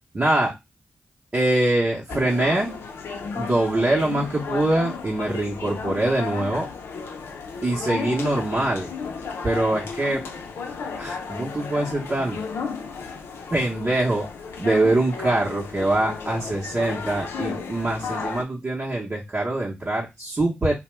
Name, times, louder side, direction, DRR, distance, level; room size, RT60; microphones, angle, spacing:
voice 1, 0.1-0.5 1.3-2.7 3.4-6.7 7.6-8.9 9.4-10.2 11.0-12.4 13.5-14.3 14.6-20.7, right 2 dB, 35° right, -3 dB, 0.8 m, -23 dB
sound 1, 2.1-18.4, left 5 dB, 85° left, 0.5 m, -33 dB
2.8 x 2.1 x 3.2 m, 0.21 s
cardioid pair, 60°, 4 cm